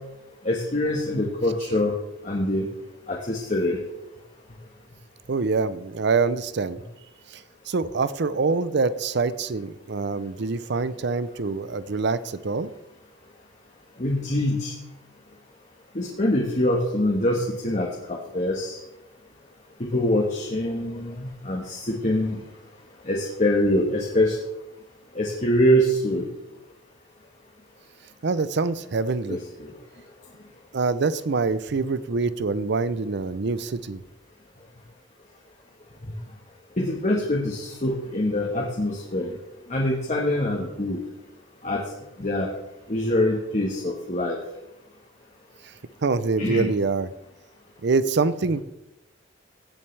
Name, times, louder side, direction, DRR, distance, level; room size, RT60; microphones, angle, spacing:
voice 1, 0.4-1.9 2.2-2.7 3.1-3.8 14.0-14.7 15.9-18.8 19.8-22.4 23.1-24.4 25.1-26.3 29.3-29.7 36.8-39.3 39.7-41.0 41.6-41.8 42.2-42.5 42.9-44.4 46.4-46.7, left 1 dB, 40° left, -2 dB, 1.3 m, -24 dB
voice 2, 5.3-6.8 7.3-12.7 28.2-29.4 30.7-34.0 45.6-45.7 46.0-47.1 47.8-48.6, right 4 dB, 60° right, 15 dB, 0.6 m, -25 dB
16.0 x 8.7 x 3.3 m, 0.90 s
head